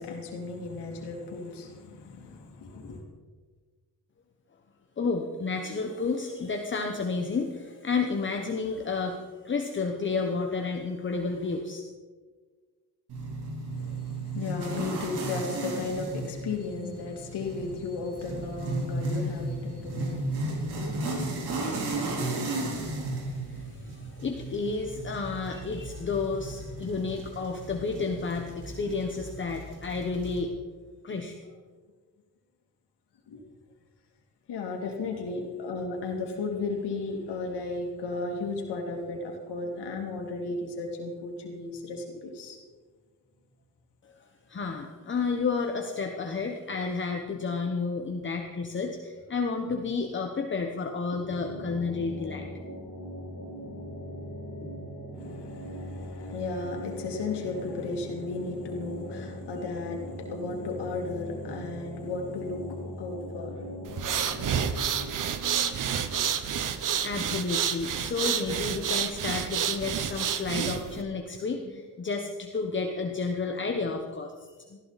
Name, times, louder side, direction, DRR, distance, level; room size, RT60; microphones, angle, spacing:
voice 1, 0.0-3.0 13.7-23.1 33.3-33.4 34.5-42.6 55.1-63.7, left 3 dB, 85° left, 1 dB, 2.8 m, -35 dB
voice 2, 5.0-11.8 23.5-30.5 31.0-31.3 44.0-44.1 44.5-52.4 67.0-74.8, left 4 dB, 30° left, 3 dB, 1.1 m, -31 dB
sound 1, 13.1-30.4, right 2 dB, 75° right, 4.1 m, -35 dB
sound 2, 51.1-65.1, equal, 5° left, 5.8 m, -40 dB
sound 3, 63.9-71.0, right 8 dB, 50° right, 1.1 m, -29 dB
19.0 x 14.5 x 4.2 m, 1.4 s
cardioid pair, 165°, 39 cm